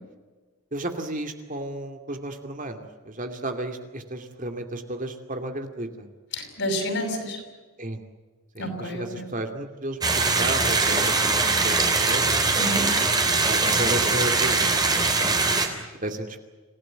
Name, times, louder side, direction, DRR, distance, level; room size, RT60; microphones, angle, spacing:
voice 1, 0.7-6.1 7.8-8.0 8.5-12.3 13.5-15.3 15.8-16.4, right 1 dB, 40° right, 5 dB, 2.5 m, -33 dB
voice 2, 6.3-7.4 8.6-9.3 12.6-13.0, equal, 60° left, 6 dB, 6.1 m, -30 dB
sound 1, 10.0-15.7, right 3 dB, 20° right, 3.4 m, -22 dB
27.0 x 17.0 x 9.3 m, 1.3 s
head